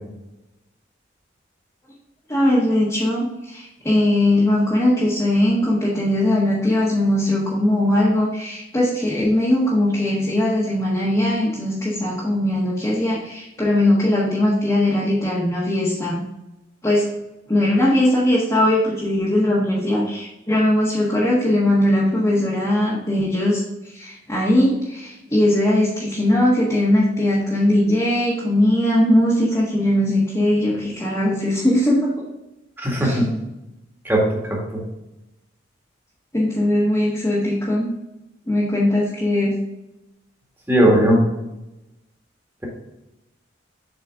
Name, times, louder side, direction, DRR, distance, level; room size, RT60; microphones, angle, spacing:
voice 1, 2.3-16.2 16.8-17.1 17.5-32.3 33.0-33.2 36.3-37.9 38.5-39.5, left 1 dB, 15° left, -7 dB, 1.4 m, -20 dB
voice 2, 32.8-33.3 34.1-34.2 34.5-34.6 40.7-41.2, right 1 dB, 10° right, -3 dB, 1.9 m, -16 dB
7.5 x 4.3 x 3.6 m, 0.96 s
head